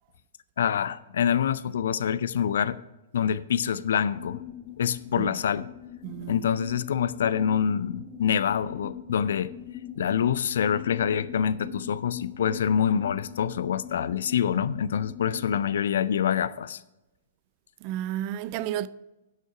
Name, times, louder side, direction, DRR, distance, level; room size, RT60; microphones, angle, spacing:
voice 1, 0.6-2.8 3.1-4.4 4.8-5.7 6.3-9.5 10.0-16.8, left 8 dB, 60° left, 0.4 m, -26 dB
sound 1, 4.1-15.6, left 9 dB, 25° left, 0.8 m, -42 dB
voice 2, 6.0-6.4 17.8-18.9, right 12 dB, 40° right, 0.4 m, -32 dB
11.0 x 6.4 x 4.8 m
figure-of-eight pair, 110°, 0 cm